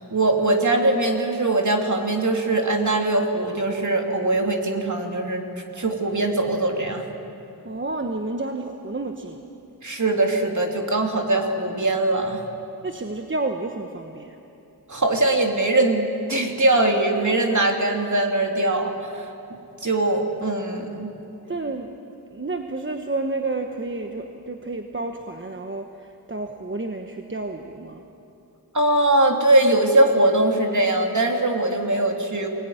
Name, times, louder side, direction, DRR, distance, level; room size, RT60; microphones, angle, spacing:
voice 1, 0.0-5.4 5.8-7.0 9.8-12.4 14.9-19.2 19.8-21.1 28.7-32.5, right 2 dB, 45° right, 2 dB, 3.0 m, -21 dB
voice 2, 7.6-9.4 12.8-14.4 21.5-22.0 22.3-28.0, right 2 dB, 30° right, 4 dB, 1.2 m, -30 dB
23.5 x 19.5 x 9.5 m, 2.9 s
wide cardioid pair, 70°, 40 cm